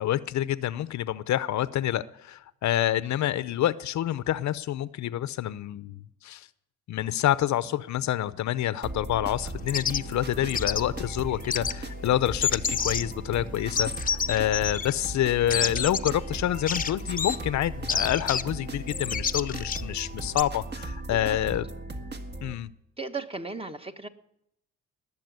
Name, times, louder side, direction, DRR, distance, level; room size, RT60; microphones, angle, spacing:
voice 1, 0.0-6.5 6.9-21.6 22.4-22.7, left 12 dB, 70° left, 0.7 m, -27 dB
sound 1, 8.8-22.5, right 2 dB, 35° right, 1.6 m, -37 dB
sound 2, 9.6-20.4, left 6 dB, 30° left, 0.7 m, -31 dB
voice 2, 23.0-24.1, right 4 dB, 20° right, 1.3 m, -35 dB
20.0 x 7.2 x 9.5 m
cardioid pair, 90°, 30 cm